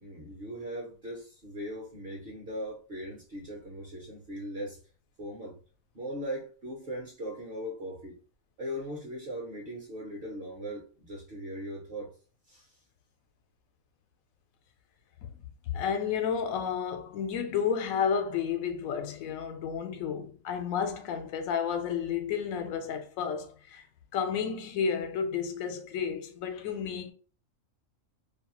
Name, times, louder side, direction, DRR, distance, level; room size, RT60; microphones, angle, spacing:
voice 1, 0.0-4.8 5.2-5.6 5.9-8.2 8.6-12.1 12.5-12.7, equal, 50° right, 0.8 m, -39 dB
voice 2, 15.7-23.8 24.1-27.1, left 7 dB, 90° left, 1.0 m, -31 dB
2.6 x 2.2 x 2.9 m
omnidirectional pair, 1.4 m